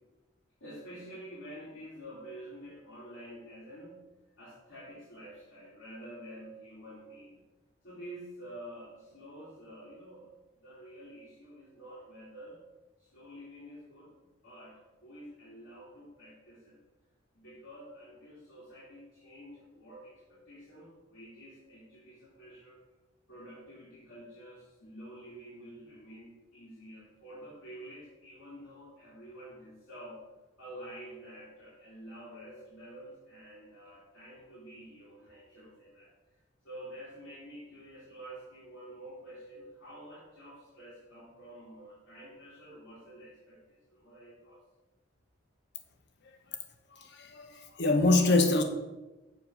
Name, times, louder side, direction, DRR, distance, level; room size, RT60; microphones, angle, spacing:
voice 1, 0.6-4.0 4.4-7.4 7.8-10.3 10.6-12.6 13.0-14.1 14.4-16.8 17.3-22.8 23.3-30.2 30.6-36.1 36.6-44.6, right 1 dB, 85° left, -9 dB, 2.8 m, -49 dB
voice 2, 46.9-48.6, left 2 dB, 60° left, 5 dB, 0.8 m, -25 dB
7.1 x 4.8 x 6.4 m, 1.1 s
head